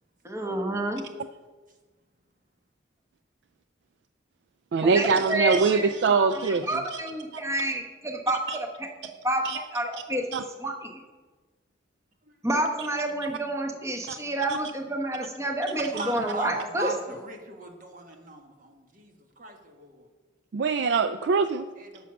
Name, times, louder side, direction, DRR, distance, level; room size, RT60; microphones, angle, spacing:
voice 1, 0.2-1.0 4.8-6.4 6.7-8.9 9.2-10.2 10.6-11.0 12.4-16.9, right 1 dB, 15° right, 2 dB, 1.0 m, -29 dB
voice 2, 4.7-7.0 8.5-8.6 9.4-9.6 10.3-10.4 13.2-13.3 14.1-14.2 14.5-14.6 15.9-16.1 20.5-21.7, right 4 dB, 60° right, 10 dB, 0.3 m, -24 dB
voice 3, 15.7-20.1 21.7-22.1, right 2 dB, 40° right, 3 dB, 1.3 m, -39 dB
11.0 x 6.1 x 6.0 m, 1.3 s
head